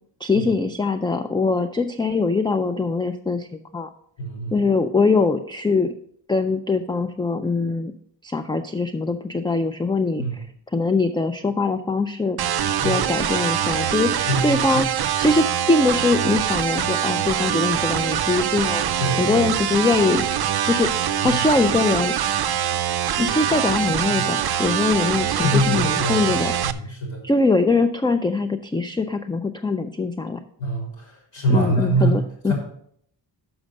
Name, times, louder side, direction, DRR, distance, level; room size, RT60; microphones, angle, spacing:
voice 1, 0.2-3.9 4.5-5.9 6.3-7.9 8.2-10.4 10.7-12.4 12.8-14.9 15.2-18.8 19.2-20.2 20.6-22.1 23.2-26.5 27.2-30.4 31.5-32.5, left 3 dB, 10° left, 8 dB, 0.3 m, -22 dB
voice 2, 4.2-4.6 10.2-10.4 12.8-13.1 14.3-14.8 19.0-19.4 24.0-24.2 25.4-26.4 26.7-27.2 30.6-32.2 32.5-32.6, right 1 dB, 85° left, -2 dB, 3.8 m, -24 dB
sound 1, 12.4-26.7, right 10 dB, 60° right, 0.5 m, -23 dB
6.4 x 6.1 x 6.4 m, 0.66 s
wide cardioid pair, 115°, 44 cm